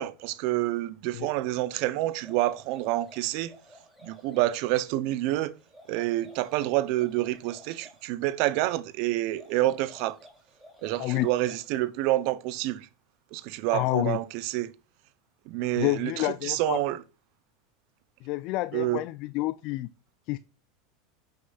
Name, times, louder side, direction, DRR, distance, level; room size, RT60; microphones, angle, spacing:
voice 1, 0.0-3.5 4.0-5.5 5.9-10.2 10.8-12.9 13.3-14.7 15.5-17.0 18.7-19.0, right 16 dB, 60° right, 0.5 m, -28 dB
sound 1, 2.1-4.5 5.6-8.0 9.2-11.8, left 1 dB, ahead, 2.9 m, -53 dB
voice 2, 13.7-14.2 15.8-16.8 18.2-19.9 20.3-20.4, left 19 dB, 55° left, 0.3 m, -29 dB
11.0 x 6.5 x 2.3 m
supercardioid pair, 115°, 0 cm